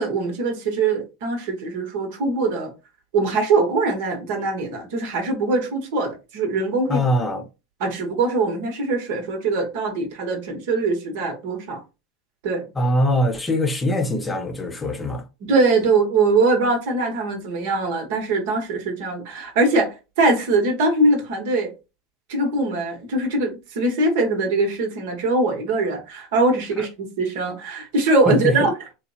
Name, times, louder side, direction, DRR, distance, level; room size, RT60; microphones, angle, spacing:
voice 1, 0.0-2.7 3.1-7.0 7.8-11.8 12.4-12.7 15.4-21.7 22.3-28.7, right 3 dB, 70° right, 0.9 m, -22 dB
voice 2, 6.9-7.4 12.7-15.2 28.3-28.5, left 1 dB, 15° left, 0.7 m, -22 dB
3.1 x 2.0 x 2.7 m
hypercardioid pair, 95°, 0 cm